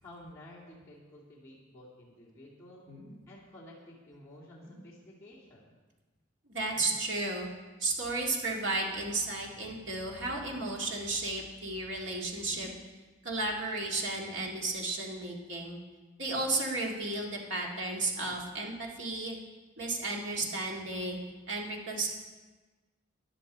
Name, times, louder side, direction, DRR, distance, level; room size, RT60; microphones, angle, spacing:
voice 1, 0.0-2.9 3.3-5.8, left 1 dB, 15° left, -9 dB, 2.3 m, -52 dB
sound 1, 2.9-3.2 4.6-4.9 6.7-7.1 8.6-8.8 10.6-10.9 12.5-12.8 14.3-14.6 16.3-16.5 18.2-18.8 20.3-20.6 21.4-21.5, equal, 25° right, 3.0 m, -51 dB
voice 2, 6.5-7.5 7.8-12.7 13.2-15.8 16.2-19.4 19.8-21.2 21.5-22.1, right 2 dB, 70° right, -1 dB, 2.0 m, -33 dB
13.0 x 10.0 x 4.2 m, 1.3 s
head